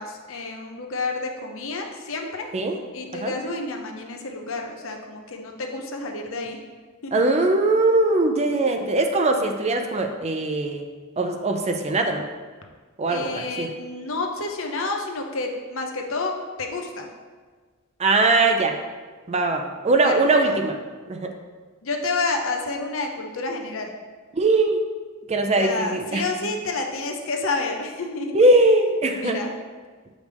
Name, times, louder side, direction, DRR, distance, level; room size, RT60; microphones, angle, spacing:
voice 1, 0.0-2.5 2.9-6.6 7.0-7.2 13.1-17.1 20.0-20.5 21.8-23.9 25.6-28.6 29.1-29.5, left 3 dB, 65° left, 3 dB, 0.8 m, -29 dB
voice 2, 7.1-10.8 11.2-12.2 13.0-13.7 18.0-18.8 19.3-20.8 21.1-21.3 24.3-24.8 25.3-26.2 28.3-29.4, right 2 dB, 30° right, 4 dB, 0.5 m, -21 dB
7.8 x 5.1 x 3.4 m, 1.4 s
head